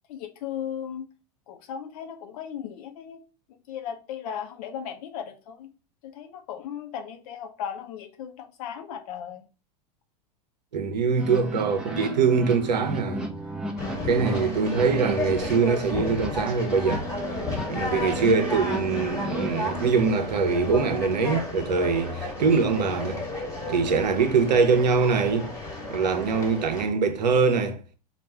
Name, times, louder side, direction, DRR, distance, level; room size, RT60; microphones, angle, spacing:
voice 1, 0.1-1.0 1.5-3.2 3.7-5.7 6.0-9.5, left 8 dB, 60° left, 0.8 m, -36 dB
voice 2, 10.7-13.3 14.0-17.1 17.7-23.2 23.7-25.5 25.9-27.8, right 5 dB, 80° right, 0.8 m, -23 dB
sound 1, 11.2-19.9, right 2 dB, 5° right, 0.8 m, -34 dB
Conversation, 13.8-26.8, left 2 dB, 15° left, 1.4 m, -33 dB
4.2 x 2.5 x 3.3 m
hypercardioid pair, 95°, 21 cm